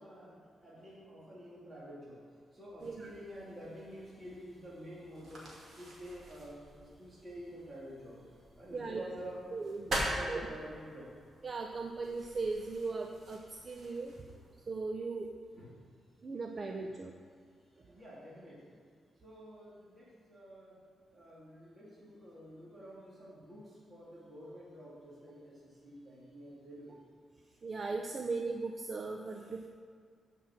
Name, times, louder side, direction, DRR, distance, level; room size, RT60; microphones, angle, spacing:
voice 1, 0.0-2.3 2.5-8.3 8.6-9.4 9.9-11.1 14.3-14.4 15.5-15.8 17.8-18.8 19.2-20.8 21.1-27.0, equal, 20° right, -8 dB, 2.6 m, -49 dB
sound 1, 2.8-14.7, right 1 dB, 50° right, 2.3 m, -44 dB
voice 2, 8.7-9.0 9.5-9.9 10.3-10.4 11.4-14.1 14.7-15.3 16.2-17.1 27.6-29.7, right 3 dB, 35° right, 2 dB, 0.6 m, -38 dB
8.5 x 5.8 x 7.5 m, 2.1 s
wide cardioid pair, 145°, 0 cm